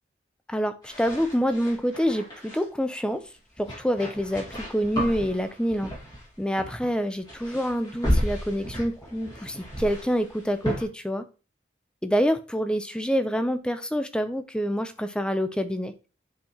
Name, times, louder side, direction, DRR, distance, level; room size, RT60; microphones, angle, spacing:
voice 1, 0.5-3.2 3.6-5.9 6.4-11.2 12.0-15.9, equal, 5° left, 9 dB, 0.5 m, -27 dB
sound 1, 0.8-2.6 3.6-6.3 6.6-6.9 7.2-10.8, equal, 25° left, 2.0 m, -33 dB
10.5 x 4.5 x 2.9 m, 0.34 s
head